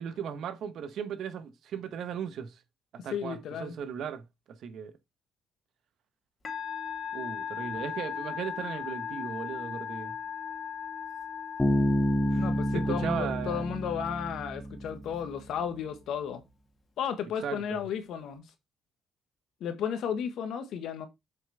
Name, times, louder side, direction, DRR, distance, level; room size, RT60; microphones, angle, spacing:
voice 1, 0.0-2.6 3.0-4.2 4.6-4.9 7.1-10.1 12.3-12.5 12.7-13.7 17.4-17.8, right 8 dB, 75° right, 1.1 m, -37 dB
voice 2, 3.1-3.8 12.4-16.4 17.0-18.4 19.6-21.1, left 8 dB, 75° left, 1.5 m, -34 dB
Musical instrument, 6.4-14.1, left 7 dB, 45° left, 2.5 m, -38 dB
Bass guitar, 11.6-15.2, equal, 10° left, 2.3 m, -29 dB
7.0 x 5.7 x 3.4 m
supercardioid pair, 70°, 0 cm